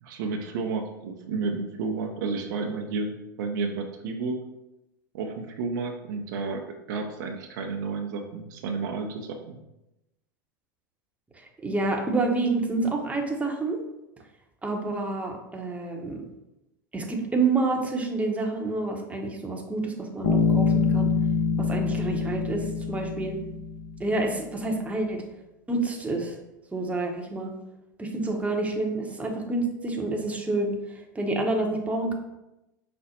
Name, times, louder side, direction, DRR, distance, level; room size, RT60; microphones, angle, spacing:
voice 1, 0.0-4.3 5.1-6.6 6.9-9.6, right 4 dB, 65° right, 3 dB, 0.6 m, -31 dB
voice 2, 11.4-13.8 14.6-16.2 16.9-21.1 21.6-23.4 24.0-25.2 25.7-26.4 26.7-27.5 28.0-32.1, right 3 dB, 10° right, 1 dB, 0.8 m, -28 dB
Bass guitar, 20.2-24.0, left 4 dB, 60° left, 0.9 m, -25 dB
5.0 x 2.0 x 4.2 m, 0.92 s
hypercardioid pair, 85°, 11 cm